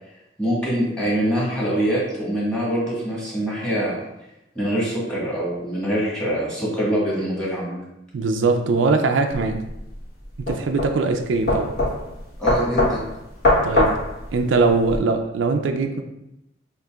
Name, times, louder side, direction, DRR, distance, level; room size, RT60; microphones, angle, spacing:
voice 1, 0.4-4.0 4.5-7.8 12.4-13.0, equal, 5° left, -7 dB, 1.5 m, -24 dB
voice 2, 8.1-9.6 10.5-11.7 13.6-13.9 14.3-16.0, right 3 dB, 85° right, 5 dB, 0.4 m, -21 dB
sound 1, 9.3-15.0, left 2 dB, 55° left, 1.3 m, -23 dB
6.5 x 2.6 x 2.4 m, 0.87 s
head